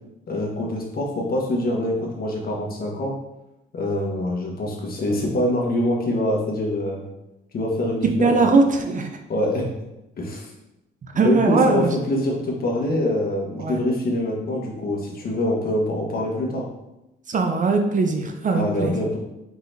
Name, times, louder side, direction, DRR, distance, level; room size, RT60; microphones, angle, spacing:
voice 1, 0.3-3.1 3.7-7.1 7.5-8.4 9.3-9.7 10.2-10.5 11.1-16.7 18.5-19.2, left 1 dB, 50° left, 0 dB, 1.2 m, -24 dB
voice 2, 8.2-9.1 11.2-11.9 13.6-13.8 17.3-19.0, right 3 dB, 40° right, 4 dB, 0.6 m, -20 dB
4.7 x 4.0 x 2.6 m, 0.93 s
cardioid pair, 90°, 20 cm